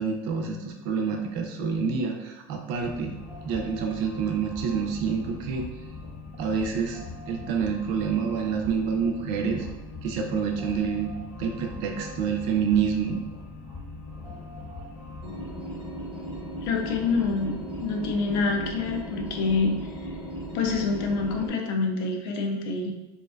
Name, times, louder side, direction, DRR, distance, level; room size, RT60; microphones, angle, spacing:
voice 1, 0.0-3.2 3.4-5.6 6.3-7.0 7.3-9.7 10.0-11.1 11.4-13.2, right 6 dB, 50° right, 2 dB, 0.4 m, -27 dB
sound 1, 2.8-21.5, left 1 dB, 20° left, 0.6 m, -39 dB
voice 2, 16.6-19.7 20.5-22.9, left 4 dB, 75° left, 3 dB, 0.4 m, -26 dB
2.5 x 2.2 x 2.3 m, 0.99 s
cardioid pair, 175°, 13 cm